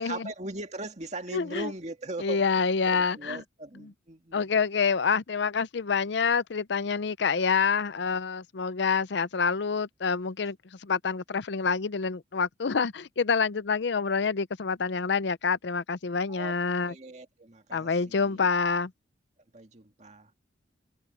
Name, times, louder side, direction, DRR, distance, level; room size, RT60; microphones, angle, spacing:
voice 1, 0.0-2.4 2.8-4.5 16.3-16.6 16.9-18.5 19.5-20.3, right 2 dB, 40° right, 2.1 m, -39 dB
voice 2, 1.3-1.7 2.2-3.4 3.8-3.9 4.3-10.6 10.8-16.9 17.7-18.9, left 5 dB, 65° left, 0.6 m, -27 dB
head